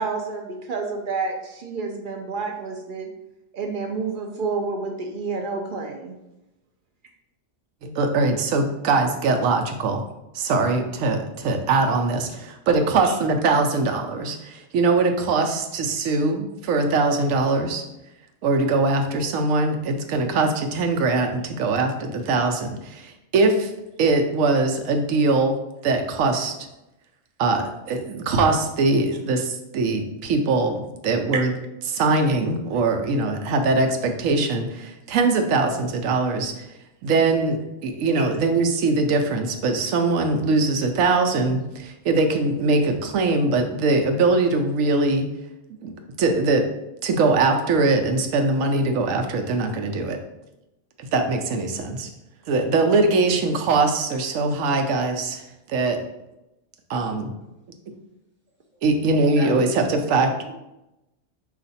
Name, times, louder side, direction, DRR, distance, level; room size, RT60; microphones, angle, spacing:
voice 1, 0.0-3.1 3.5-6.2 13.0-13.1 38.1-38.3, right 4 dB, 55° right, 3 dB, 0.6 m, -29 dB
voice 2, 7.8-10.0 10.3-17.8 18.4-23.7 24.0-25.6 25.8-26.5 27.4-31.5 31.9-36.7 37.0-45.3 45.8-45.9 46.2-46.7 47.0-50.2 51.1-52.1 52.5-55.4 55.7-56.0 56.9-57.3 58.8-60.3, right 3 dB, 85° right, 5 dB, 1.0 m, -22 dB
voice 3, 59.3-60.5, right 1 dB, 10° right, -2 dB, 0.8 m, -36 dB
4.9 x 2.5 x 4.0 m, 0.92 s
omnidirectional pair, 1.3 m